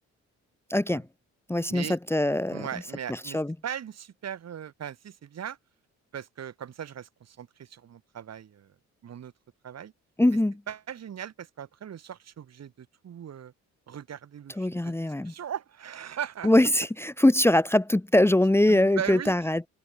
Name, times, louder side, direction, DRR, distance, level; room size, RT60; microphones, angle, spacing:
voice 1, 0.7-1.1 1.5-2.7 3.1-3.5 10.2-10.6 14.6-15.3 16.4-19.7, left 1 dB, 10° left, 1.3 m, -22 dB
voice 2, 2.5-3.4 3.6-5.6 6.1-8.7 9.0-9.3 9.6-9.9 10.7-13.5 13.9-16.5 18.7-19.3, right 9 dB, 60° right, 4.5 m, -38 dB
cardioid pair, 90°, 30 cm